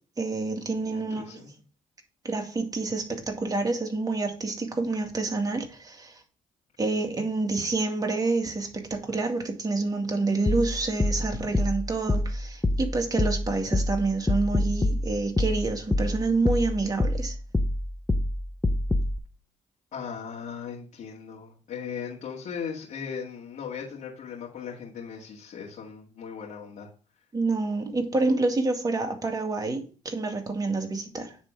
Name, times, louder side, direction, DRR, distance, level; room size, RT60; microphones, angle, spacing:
voice 1, 0.2-1.4 2.2-6.2 6.8-17.4 27.3-31.4, right 3 dB, 25° right, 2.1 m, -28 dB
voice 2, 0.9-1.6 19.9-26.9, left 7 dB, 65° left, 2.1 m, -38 dB
sound 1, 10.5-19.2, left 1 dB, 15° left, 0.7 m, -26 dB
9.7 x 3.6 x 4.9 m
supercardioid pair, 70°, 14 cm